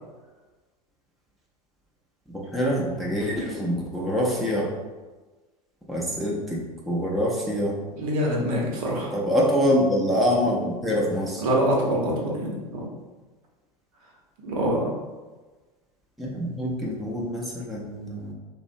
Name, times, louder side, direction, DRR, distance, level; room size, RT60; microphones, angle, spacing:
voice 1, 2.3-4.7 5.9-7.8 9.1-11.4 16.2-18.3, equal, ahead, -4 dB, 0.4 m, -25 dB
voice 2, 8.0-9.1 11.4-12.8 14.4-14.9, right 1 dB, 65° right, -2 dB, 0.8 m, -25 dB
2.5 x 2.0 x 2.5 m, 1.3 s
hypercardioid pair, 90°, 20 cm